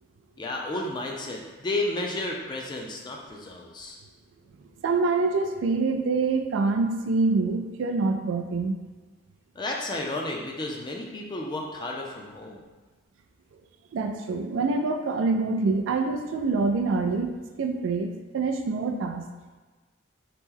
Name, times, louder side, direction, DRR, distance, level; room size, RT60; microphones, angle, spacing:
voice 1, 0.4-4.0 9.6-12.6, left 2 dB, 25° left, 0 dB, 0.4 m, -32 dB
voice 2, 4.8-8.8 13.9-19.3, right 3 dB, 85° right, 5 dB, 0.3 m, -26 dB
2.9 x 2.0 x 3.6 m, 1.3 s
head